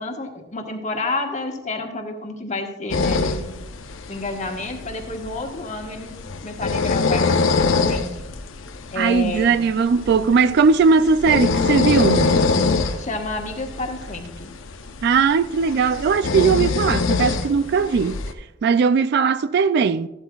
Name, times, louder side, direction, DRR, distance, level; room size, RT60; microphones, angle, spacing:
voice 1, 0.0-3.5 4.1-6.1 6.4-8.2 8.9-9.6 13.0-14.5, left 2 dB, 40° left, 1.3 m, -30 dB
sound 1, 2.9-18.3, left 4 dB, 85° left, 0.7 m, -24 dB
voice 2, 9.0-12.3 15.0-18.2 18.6-20.1, right 5 dB, 55° right, 0.3 m, -18 dB
14.0 x 12.0 x 2.3 m
head